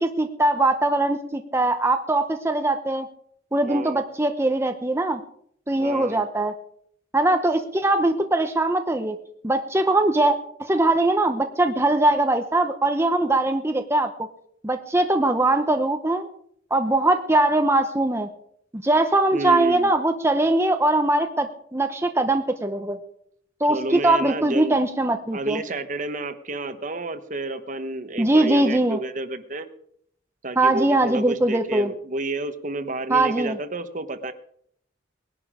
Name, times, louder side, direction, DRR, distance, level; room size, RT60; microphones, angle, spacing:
voice 1, 0.0-3.1 3.5-5.2 5.7-6.5 7.1-9.2 9.4-10.3 10.6-14.3 14.6-16.3 16.7-18.3 18.7-23.0 23.6-25.6 28.2-29.0 30.6-31.9 33.1-33.6, right 2 dB, 15° right, 6 dB, 0.8 m, -21 dB
voice 2, 3.6-4.0 5.8-6.3 19.3-19.9 23.7-24.8 25.3-29.7 30.4-34.3, right 2 dB, 45° right, 10 dB, 1.1 m, -30 dB
20.0 x 11.0 x 5.0 m, 0.69 s
head